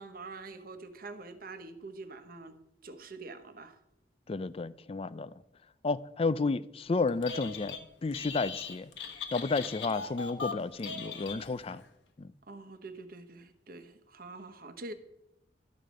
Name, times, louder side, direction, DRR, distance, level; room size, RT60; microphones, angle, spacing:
voice 1, 0.0-2.6 2.8-3.8 12.5-14.9, right 3 dB, 55° right, 1.1 m, -45 dB
voice 2, 4.3-5.3 5.8-7.8 8.0-8.9 9.3-11.8 12.2-12.3, left 3 dB, 30° left, 0.4 m, -32 dB
Telephone, 7.1-7.8 8.1-11.8, left 5 dB, 80° left, 1.3 m, -40 dB
13.0 x 5.2 x 7.5 m
head